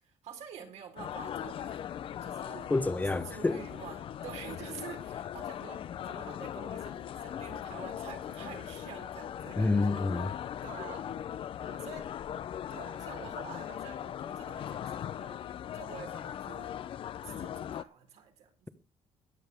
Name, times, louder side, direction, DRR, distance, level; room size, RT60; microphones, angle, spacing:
voice 1, 0.0-1.8 2.2-2.7 3.1-11.1 11.6-12.1 12.7-15.4 15.7-16.7 17.2-18.7, right 7 dB, 75° right, 3.9 m, -48 dB
sound 1, 1.0-17.8, left 10 dB, 50° left, 0.6 m, -39 dB
voice 2, 2.7-3.6 9.6-10.3, left 3 dB, 15° left, 1.0 m, -28 dB
22.0 x 7.9 x 3.5 m
cardioid pair, 145°, 12 cm